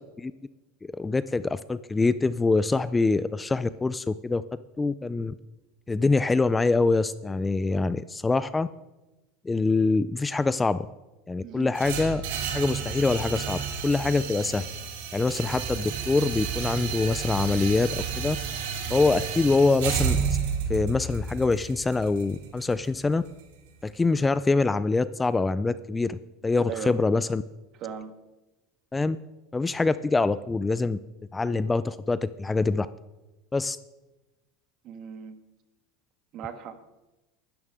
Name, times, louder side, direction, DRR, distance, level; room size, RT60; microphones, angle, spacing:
voice 1, 0.8-4.4 4.8-5.3 5.9-8.7 9.4-10.9 11.3-12.2 12.5-14.6 15.1-18.4 18.9-20.2 20.7-23.2 23.8-26.2 26.4-27.4 28.9-29.2 29.5-31.0 31.3-32.9 33.5-33.8, left 3 dB, 10° left, 15 dB, 0.4 m, -24 dB
voice 2, 11.4-11.7 26.7-27.0 27.8-28.1 34.8-35.4 36.3-36.8, right 8 dB, 45° right, 8 dB, 1.7 m, -37 dB
sound 1, 11.7-23.8, right 6 dB, 85° right, 2.7 m, -31 dB
19.5 x 13.0 x 3.7 m, 1.1 s
supercardioid pair, 135°, 0 cm